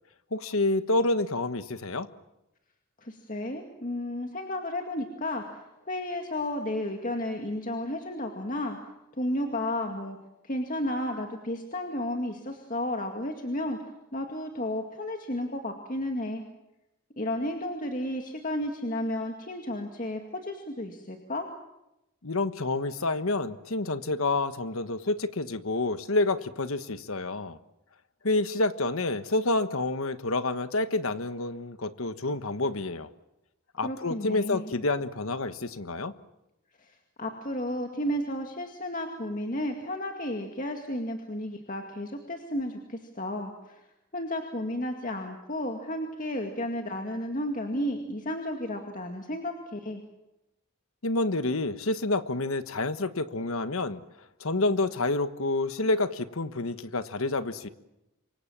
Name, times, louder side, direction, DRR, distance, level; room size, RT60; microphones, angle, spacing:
voice 1, 0.3-2.1 22.2-27.6 28.2-33.1 33.8-36.1 51.0-54.0 54.4-57.7, left 2 dB, 75° left, 11 dB, 1.3 m, -28 dB
voice 2, 3.0-8.8 9.2-10.2 10.4-13.8 14.1-16.4 17.2-21.5 33.8-34.7 36.8-43.8 44.1-50.0, left 1 dB, 40° left, 3 dB, 2.2 m, -33 dB
28.0 x 24.0 x 7.5 m, 0.92 s
head